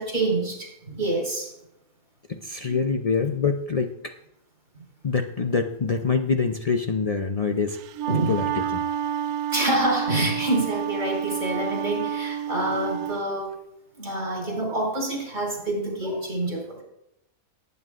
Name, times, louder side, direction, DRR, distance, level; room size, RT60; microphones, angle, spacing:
voice 1, 0.0-1.5 2.6-2.8 8.1-8.4 9.5-13.5 14.0-16.8, right 1 dB, 45° right, -1 dB, 4.9 m, -27 dB
voice 2, 2.3-4.1 5.0-7.8 8.3-8.8, left 5 dB, 60° left, 5 dB, 0.3 m, -25 dB
Wind instrument woodwind instrument, 7.8-13.2, right 9 dB, 90° right, 1.1 m, -29 dB
18.5 x 9.5 x 2.5 m, 0.82 s
omnidirectional pair, 1.5 m